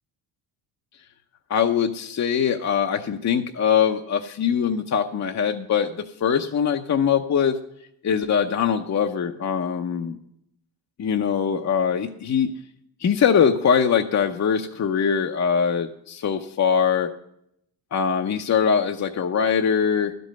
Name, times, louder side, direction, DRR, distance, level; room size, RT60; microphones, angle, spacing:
voice 1, 1.5-7.5 8.0-10.2 11.0-12.5 13.0-17.1 17.9-20.1, left 7 dB, 35° left, 5 dB, 0.7 m, -22 dB
12.0 x 5.3 x 7.5 m, 0.75 s
cardioid pair, 80°, 47 cm